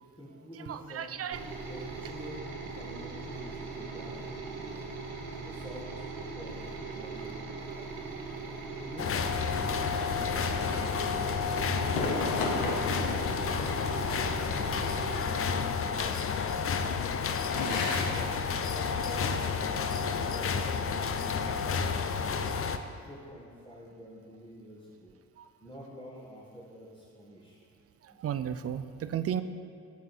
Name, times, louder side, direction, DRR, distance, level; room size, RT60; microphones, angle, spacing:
voice 1, 0.2-1.2 1.7-4.2 4.4-4.9 5.2-7.3 8.8-11.3 13.3-15.3 15.6-16.1 17.5-19.5 19.9-21.6 22.3-22.6 23.0-25.2 25.6-27.6 28.1-28.2, equal, 15° left, -8 dB, 1.8 m, -48 dB
voice 2, 0.7-1.4 25.4-25.5 28.2-29.4, right 9 dB, 40° right, 12 dB, 0.5 m, -33 dB
sound 1, 1.3-15.2, right 3 dB, 70° right, 1.4 m, -40 dB
sound 2, 9.0-22.8, left 6 dB, 40° left, 0.6 m, -30 dB
sound 3, 11.8-13.4 17.3-18.3 18.6-19.5, left 3 dB, 70° left, 1.1 m, -34 dB
7.3 x 7.1 x 4.4 m, 2.4 s
hypercardioid pair, 55°, 37 cm